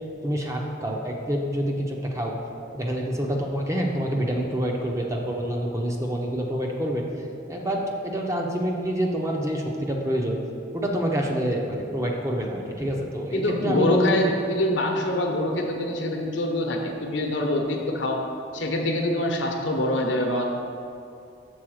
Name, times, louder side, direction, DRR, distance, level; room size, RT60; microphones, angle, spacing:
voice 1, 0.2-2.3 2.7-7.0 7.5-10.4 10.7-14.3, equal, 15° right, 0 dB, 0.7 m, -27 dB
voice 2, 13.3-18.2 18.5-20.5, left 1 dB, 75° left, 2 dB, 0.8 m, -25 dB
6.3 x 3.9 x 6.3 m, 2.6 s
head